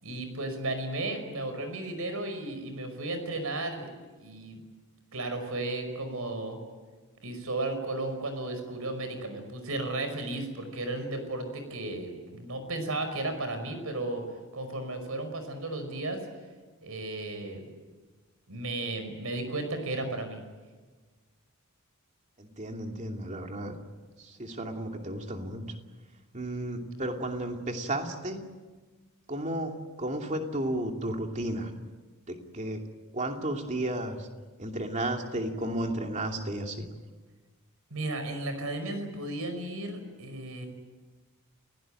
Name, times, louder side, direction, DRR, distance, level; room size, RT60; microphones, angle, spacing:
voice 1, 0.0-3.9 4.2-4.6 5.1-6.6 7.2-14.2 14.5-16.2 16.8-17.6 18.5-20.4 37.9-40.7, right 2 dB, 75° right, 8 dB, 5.3 m, -34 dB
voice 2, 22.4-23.7 24.2-25.8 26.3-28.4 29.3-29.7 30.0-31.7 32.3-32.8 33.1-34.3 34.6-36.9, right 1 dB, 35° right, 3 dB, 2.7 m, -33 dB
29.5 x 17.0 x 9.1 m, 1.3 s
head